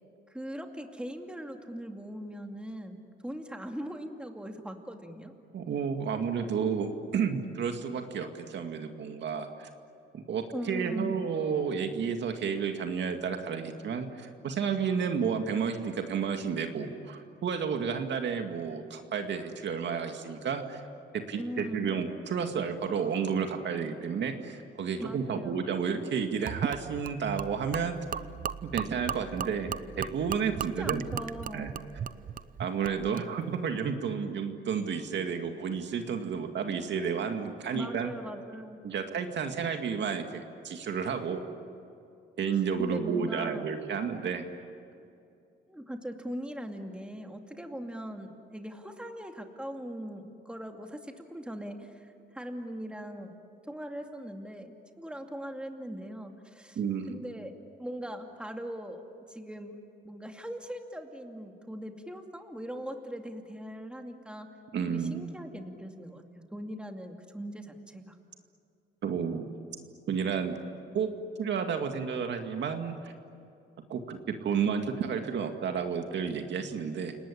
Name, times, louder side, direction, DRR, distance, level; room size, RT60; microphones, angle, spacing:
voice 1, 0.3-3.0 3.2-5.3 10.5-11.2 21.4-21.9 25.0-25.6 30.8-31.8 37.7-38.8 42.8-43.7 45.7-53.3 53.7-56.8 57.1-57.5 57.8-59.0 59.3-59.8 60.0-64.5 64.9-68.1, equal, 5° right, 4 dB, 2.5 m, -40 dB
voice 2, 5.5-9.7 10.1-20.8 21.1-28.0 28.6-29.7 30.0-31.0 31.5-31.7 32.6-38.1 38.8-41.4 42.4-44.5 56.8-57.2 64.7-65.3 69.0-69.5 70.1-70.6 70.9-71.1 71.4-73.1 73.9-77.2, right 6 dB, 65° right, 5 dB, 2.2 m, -31 dB
Gurgling / Liquid, 26.5-33.3, right 8 dB, 45° right, 0.7 m, -37 dB
29.5 x 19.0 x 10.0 m, 2.5 s
cardioid pair, 90°, 20 cm